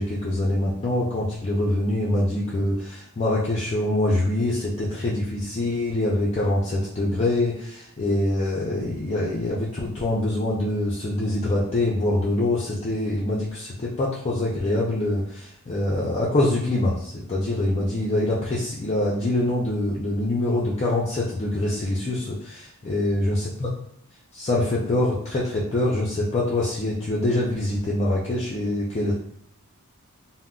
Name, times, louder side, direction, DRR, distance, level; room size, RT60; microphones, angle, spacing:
voice 1, 0.0-23.7 24.3-29.1, left 1 dB, 30° left, -6 dB, 0.4 m, -24 dB
3.7 x 2.0 x 2.2 m, 0.70 s
head